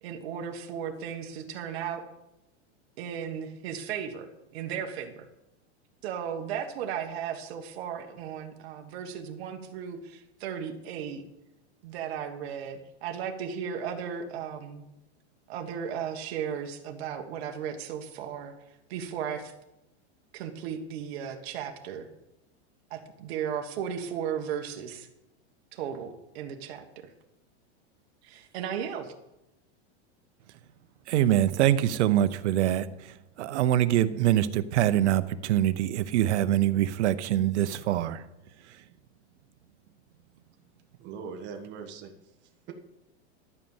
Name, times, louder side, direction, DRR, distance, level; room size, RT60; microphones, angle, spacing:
voice 1, 0.0-2.0 3.0-5.2 6.0-11.2 11.8-14.8 15.5-18.5 18.9-19.5 20.3-22.1 22.9-25.1 25.7-27.1 28.2-29.1, right 8 dB, 60° right, 4 dB, 1.5 m, -35 dB
voice 2, 31.1-38.2, right 12 dB, 80° right, 14 dB, 0.8 m, -24 dB
voice 3, 41.0-42.7, right 6 dB, 30° right, 4 dB, 1.3 m, -42 dB
12.5 x 5.4 x 7.2 m, 0.90 s
supercardioid pair, 155°, 34 cm